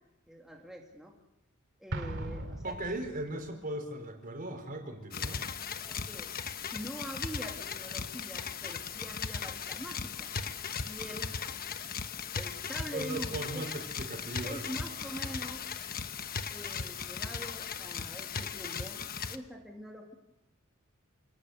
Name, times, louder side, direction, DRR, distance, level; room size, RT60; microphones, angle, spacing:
voice 1, 0.3-1.1 1.8-3.0 5.8-6.3 6.7-10.3 10.8-11.4 12.3-13.6 14.4-15.6 16.5-19.0 19.3-20.1, equal, ahead, -1 dB, 2.5 m, -44 dB
Explosion, 1.9-3.6, right 1 dB, 60° right, 2.4 m, -39 dB
voice 2, 2.6-5.4 12.9-14.6 15.2-15.3, right 1 dB, 40° right, 5 dB, 4.7 m, -38 dB
sound 1, 5.1-19.4, left 6 dB, 45° left, 1.2 m, -38 dB
28.0 x 18.5 x 8.0 m, 0.97 s
head